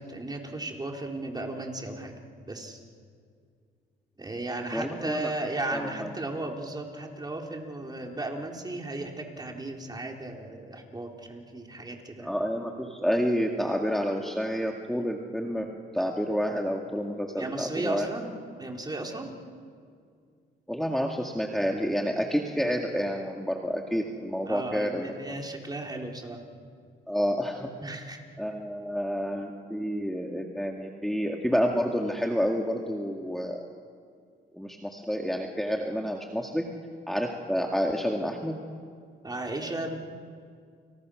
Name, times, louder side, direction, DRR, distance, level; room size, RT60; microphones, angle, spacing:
voice 1, 0.0-2.1 2.5-2.8 4.2-12.3 17.4-18.3 18.6-19.3 24.5-26.4 27.8-28.2 39.2-40.0, right 2 dB, 20° right, 1 dB, 4.0 m, -35 dB
voice 2, 4.7-5.3 5.7-6.1 12.2-15.7 15.9-18.1 20.7-25.1 27.1-27.7 28.4-33.7 34.5-36.7 37.1-38.6, equal, ahead, 1 dB, 2.2 m, -29 dB
29.5 x 29.5 x 6.5 m, 2.2 s
cardioid pair, 90°, 20 cm